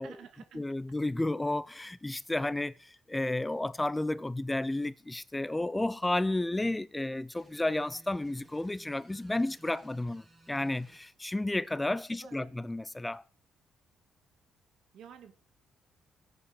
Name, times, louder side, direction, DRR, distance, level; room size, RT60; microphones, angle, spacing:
voice 1, 0.0-0.6 12.2-12.5 14.9-15.3, right 8 dB, 75° right, 2.2 m, -51 dB
voice 2, 0.5-13.2, left 2 dB, 10° left, 0.6 m, -32 dB
sound 1, 7.4-11.0, right 1 dB, 20° right, 4.9 m, -58 dB
16.5 x 8.6 x 6.7 m
cardioid pair, 90°, 0 cm